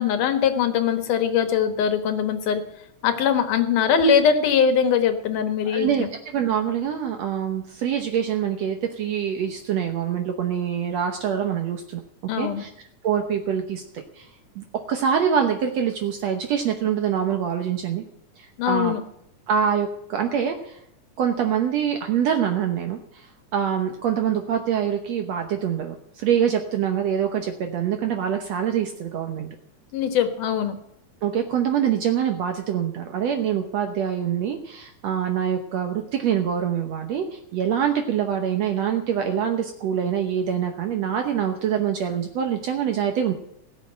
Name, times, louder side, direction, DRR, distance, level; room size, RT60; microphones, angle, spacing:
voice 1, 0.0-2.6 3.0-6.1 12.3-12.6 18.6-19.0 29.9-30.8, left 7 dB, 85° left, 8 dB, 2.9 m, -21 dB
voice 2, 5.7-12.0 12.4-12.7 13.0-14.3 14.6-18.0 18.4-19.0 19.5-20.8 21.2-29.5 31.2-43.3, right 8 dB, 65° right, 5 dB, 2.0 m, -25 dB
18.0 x 6.6 x 8.7 m, 0.78 s
omnidirectional pair, 3.6 m